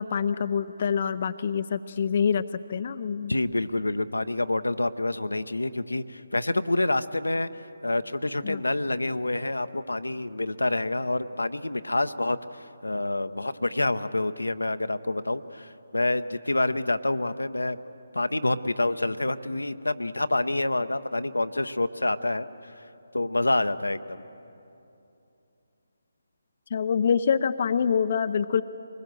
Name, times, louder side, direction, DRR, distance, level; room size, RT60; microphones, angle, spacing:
voice 1, 0.0-2.4 2.7-3.3 8.5-8.6 26.7-28.6, left 7 dB, 45° left, 11 dB, 0.5 m, -25 dB
voice 2, 3.3-7.5 7.8-17.8 18.1-22.7 23.1-24.2, left 2 dB, 85° left, 11 dB, 0.8 m, -27 dB
23.5 x 20.5 x 7.6 m, 2.8 s
figure-of-eight pair, 150°, 0 cm